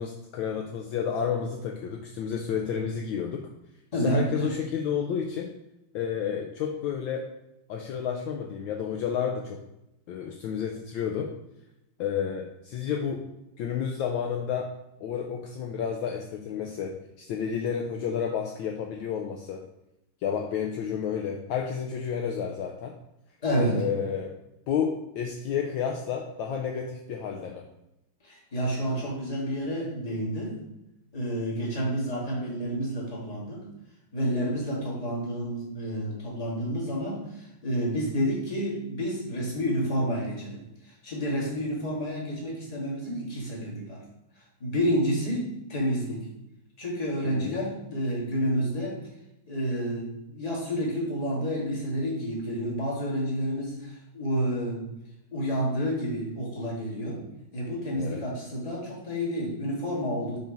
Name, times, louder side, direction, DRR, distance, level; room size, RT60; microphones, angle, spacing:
voice 1, 0.0-3.4 3.9-5.5 5.9-7.3 7.7-9.6 10.1-11.3 12.0-13.2 13.6-14.7 15.0-19.6 20.2-23.0 23.7-24.4 24.7-27.7 47.2-47.6 57.9-58.2, left 7 dB, 75° left, 2 dB, 1.3 m, -31 dB
voice 2, 3.9-4.5 23.4-23.8 28.2-30.6 31.1-33.6 34.1-44.0 44.6-46.2 46.8-49.0 49.5-54.8 55.3-57.2 57.5-60.4, equal, 20° left, -4 dB, 1.7 m, -29 dB
5.3 x 3.9 x 5.1 m, 0.87 s
omnidirectional pair, 2.4 m